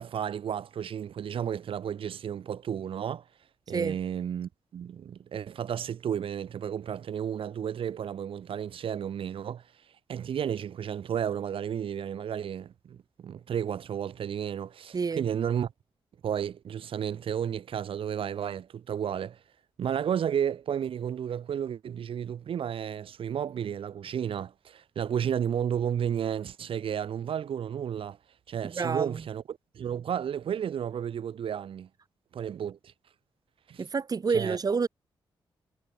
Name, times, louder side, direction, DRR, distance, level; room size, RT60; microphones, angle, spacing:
voice 1, 0.0-3.2 3.7-9.6 10.1-15.7 16.2-19.4 19.8-28.2 28.5-31.9 32.3-32.8 33.7-33.8 34.3-34.6, right 8 dB, 85° right, 5.3 m, -32 dB
voice 2, 3.7-4.0 14.9-15.3 28.6-29.2 33.8-34.9, right 5 dB, 45° right, 3.5 m, -28 dB
wide cardioid pair, 105°, 9 cm